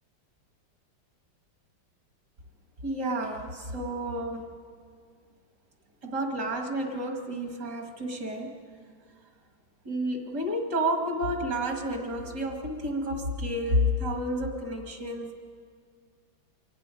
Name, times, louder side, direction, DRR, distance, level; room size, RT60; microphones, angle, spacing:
voice 1, 2.8-4.5 6.0-8.6 9.8-15.4, equal, 55° right, 3 dB, 2.6 m, -30 dB
24.5 x 11.5 x 9.8 m, 2.1 s
omnidirectional pair, 2.1 m